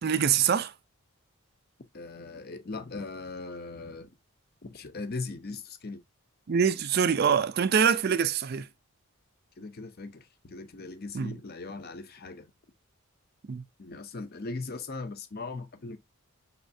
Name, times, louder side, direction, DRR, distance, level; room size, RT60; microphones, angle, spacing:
voice 1, 0.0-0.7 6.5-8.7 11.1-11.3 13.5-13.6, right 7 dB, 45° right, 0.4 m, -24 dB
voice 2, 1.9-4.2 4.6-6.0 9.6-12.5 13.8-16.0, left 3 dB, 45° left, 0.6 m, -39 dB
5.5 x 3.2 x 2.6 m
head